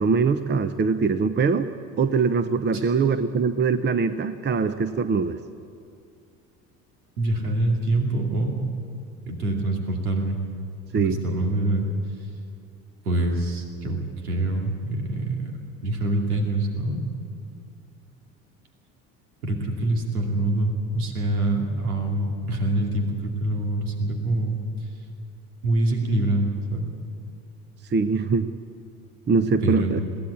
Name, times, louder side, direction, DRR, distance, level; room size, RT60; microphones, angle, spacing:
voice 1, 0.0-1.7 2.0-5.4 10.9-11.2 27.9-28.5 29.3-30.0, right 5 dB, 25° right, 11 dB, 0.9 m, -22 dB
voice 2, 7.2-8.6 9.3-10.4 11.0-11.9 12.2-12.3 13.0-15.5 15.8-17.0 19.4-24.9 25.6-26.9 29.6-30.0, right 1 dB, 85° right, 1 dB, 2.6 m, -25 dB
22.0 x 17.0 x 8.6 m, 2.5 s
hypercardioid pair, 70°, 44 cm